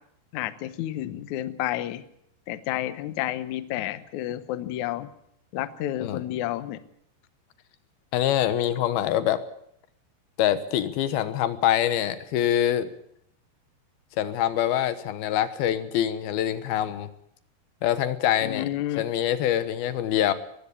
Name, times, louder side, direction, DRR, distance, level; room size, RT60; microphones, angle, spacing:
voice 1, 0.3-2.0 2.5-5.1 5.5-6.8 18.4-19.0, left 13 dB, 90° left, 13 dB, 1.6 m, -30 dB
voice 2, 8.1-9.4 10.4-12.9 14.2-17.1 17.8-18.7 19.0-20.3, left 11 dB, 70° left, 13 dB, 2.8 m, -25 dB
20.5 x 15.5 x 8.4 m, 0.71 s
omnidirectional pair, 4.9 m